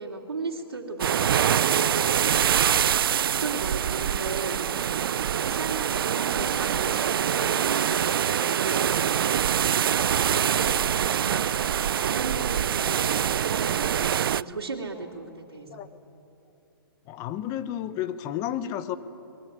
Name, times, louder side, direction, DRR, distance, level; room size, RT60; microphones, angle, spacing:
voice 1, 0.0-2.1 2.6-11.5 11.8-15.8, right 4 dB, 85° right, -3 dB, 3.1 m, -36 dB
sound 1, 1.0-14.4, right 9 dB, 65° right, 0.5 m, -24 dB
voice 2, 17.1-19.0, left 11 dB, 25° left, 12 dB, 1.2 m, -31 dB
25.5 x 21.0 x 9.5 m, 2.7 s
hypercardioid pair, 140°, 13 cm